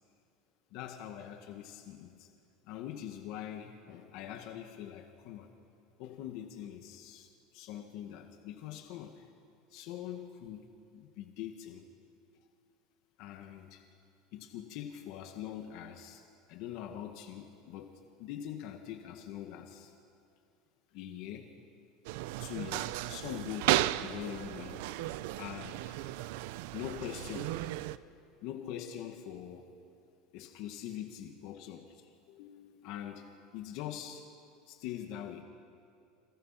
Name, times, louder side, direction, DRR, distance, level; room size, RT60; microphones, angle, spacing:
voice 1, 0.7-2.3 2.7-5.5 6.0-9.2 9.7-10.7 10.9-11.8 13.2-13.8 14.3-16.2 16.5-19.9 20.9-21.5 22.4-24.8 25.4-26.0 26.7-27.6 28.4-29.7 30.3-33.3 33.5-34.2 34.7-35.4, left 10 dB, 55° left, 4 dB, 1.9 m, -43 dB
sound 1, 22.1-28.0, right 15 dB, 70° right, 0.7 m, -34 dB
30.0 x 27.5 x 5.9 m, 2.6 s
supercardioid pair, 160°, 0 cm